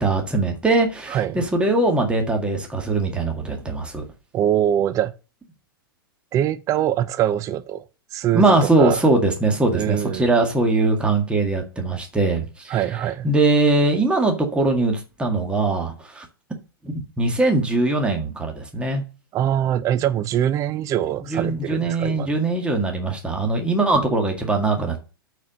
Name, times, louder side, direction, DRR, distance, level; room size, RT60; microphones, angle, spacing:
voice 1, 0.0-4.0 8.3-12.8 13.2-16.3 16.8-19.0 21.3-25.0, right 2 dB, 10° right, 1.8 m, -21 dB
voice 2, 1.1-1.4 4.3-5.1 6.3-7.9 8.1-9.0 9.7-10.3 12.7-13.3 19.3-22.3, right 11 dB, 25° right, 0.5 m, -23 dB
8.4 x 4.6 x 6.6 m
figure-of-eight pair, 100°, 12 cm